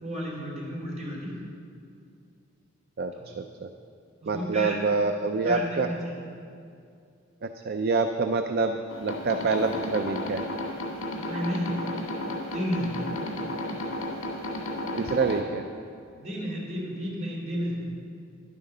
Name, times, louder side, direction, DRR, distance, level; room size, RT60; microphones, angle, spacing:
voice 1, 0.0-1.4 3.1-3.3 4.2-4.8 5.4-6.2 11.2-11.8 12.5-13.0 16.1-17.8, equal, 35° right, -4 dB, 3.1 m, -32 dB
voice 2, 3.0-3.7 4.3-5.9 7.4-10.4 15.0-15.7, right 4 dB, 50° right, 7 dB, 0.4 m, -27 dB
sound 1, 8.9-15.4, left 1 dB, 85° left, 1.9 m, -33 dB
10.5 x 8.7 x 6.6 m, 2.4 s
head